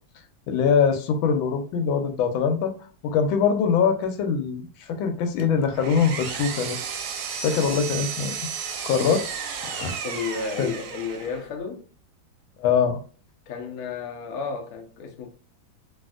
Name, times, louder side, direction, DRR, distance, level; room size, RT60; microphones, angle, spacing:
voice 1, 0.5-2.7 3.0-6.8 7.3-8.3 8.8-9.2 9.6-9.9 10.6-10.7 12.6-13.0, left 6 dB, 90° left, 1.4 m, -23 dB
Power tool, 5.4-11.5, right 6 dB, 70° right, 1.0 m, -33 dB
voice 2, 10.0-11.9 13.5-15.3, left 5 dB, 65° left, 0.9 m, -32 dB
3.4 x 2.5 x 2.3 m
omnidirectional pair, 2.1 m